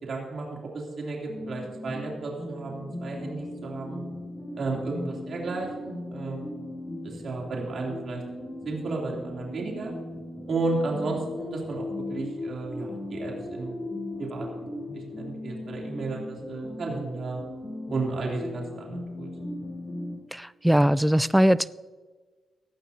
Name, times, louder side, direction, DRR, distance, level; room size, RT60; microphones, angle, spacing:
voice 1, 0.0-4.0 4.5-6.5 7.0-8.2 8.6-9.9 10.5-11.8 12.1-13.8 14.2-17.4 17.9-19.3, right 3 dB, 55° right, -2 dB, 3.1 m, -33 dB
sound 1, 1.3-20.1, left 1 dB, 35° left, 4.4 m, -38 dB
voice 2, 20.3-21.7, equal, 5° right, 18 dB, 0.3 m, -21 dB
17.0 x 12.0 x 2.8 m, 1.4 s
cardioid pair, 105°, 0 cm